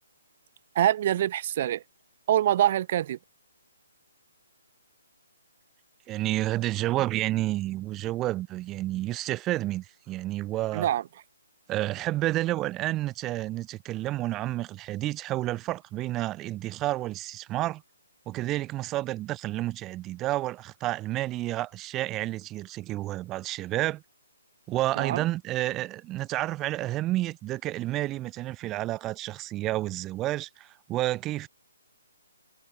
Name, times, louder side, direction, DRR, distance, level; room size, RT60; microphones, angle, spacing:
voice 1, 0.8-1.8 2.3-3.2 10.7-11.0 25.0-25.2, right 12 dB, 45° right, 0.6 m, -24 dB
voice 2, 6.1-10.9 11.7-17.8 18.3-24.0 24.7-31.5, right 16 dB, 20° right, 1.4 m, -30 dB
figure-of-eight pair, 145°, 0 cm